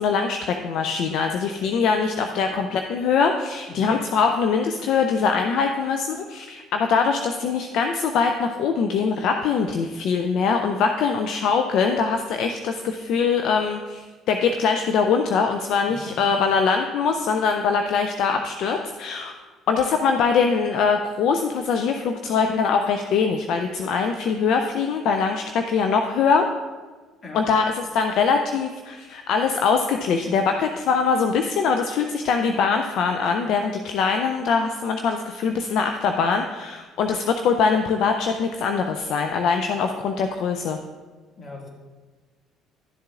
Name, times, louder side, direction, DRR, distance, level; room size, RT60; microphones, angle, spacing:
voice 1, 0.0-19.4 19.7-26.5 27.3-40.8, left 5 dB, 65° left, 5 dB, 0.4 m, -22 dB
voice 2, 2.3-2.7 3.7-3.9 16.0-16.3 27.2-27.4 41.4-41.7, left 2 dB, 40° left, 0 dB, 2.0 m, -40 dB
11.5 x 7.3 x 2.4 m, 1.3 s
hypercardioid pair, 55°, 0 cm